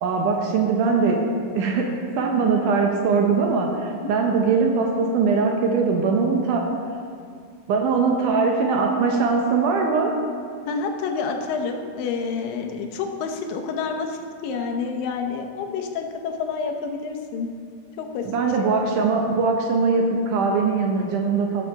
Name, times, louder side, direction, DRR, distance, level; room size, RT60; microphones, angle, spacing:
voice 1, 0.0-1.9 2.2-6.6 7.7-10.1 18.3-21.7, right 4 dB, 75° right, 1 dB, 1.9 m, -21 dB
voice 2, 10.7-17.5 18.0-18.3 18.6-18.7, left 5 dB, 75° left, 3 dB, 2.3 m, -28 dB
16.0 x 6.4 x 4.5 m, 2.2 s
omnidirectional pair, 4.5 m